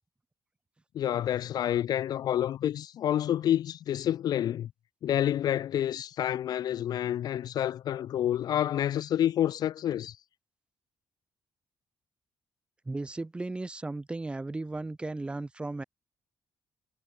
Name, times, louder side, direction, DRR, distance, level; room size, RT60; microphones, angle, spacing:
voice 1, 0.9-4.7 5.0-10.2, left 11 dB, 55° left, 0.5 m, -28 dB
voice 2, 12.9-15.8, right 2 dB, 15° right, 1.8 m, -35 dB
cardioid pair, 160°, 8 cm